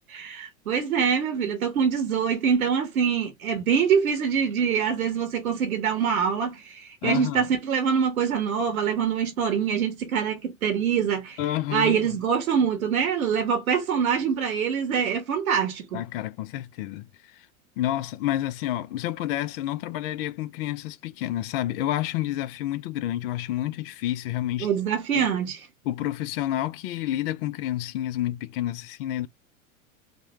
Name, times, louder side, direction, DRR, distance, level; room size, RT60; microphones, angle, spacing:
voice 1, 0.1-11.4 11.7-16.0 24.6-25.6, right 7 dB, 80° right, 1.0 m, -24 dB
voice 2, 7.0-7.5 11.4-12.2 15.9-17.1 17.3-17.5 17.8-24.7 25.1-25.3 25.8-29.3, left 13 dB, 45° left, 0.4 m, -29 dB
3.2 x 2.2 x 2.9 m
hypercardioid pair, 100°, 42 cm